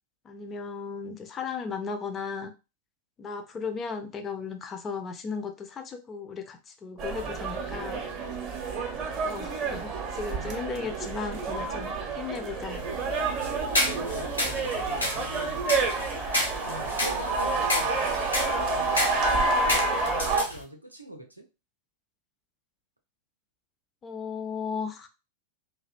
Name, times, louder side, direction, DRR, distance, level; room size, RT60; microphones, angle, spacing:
voice 1, 0.2-2.5 3.2-8.0 9.2-12.9 24.0-25.1, left 5 dB, 25° left, 7 dB, 0.4 m, -36 dB
sound 1, 7.0-20.4, right 3 dB, 35° right, 0.6 m, -29 dB
voice 2, 10.2-10.8 13.8-15.6 16.6-17.9 18.2-21.4, equal, 85° right, 2 dB, 0.5 m, -43 dB
sound 2, 12.7-20.6, left 1 dB, 80° left, 0.9 m, -31 dB
2.4 x 2.1 x 2.4 m, 0.29 s
figure-of-eight pair, 90°, 0 cm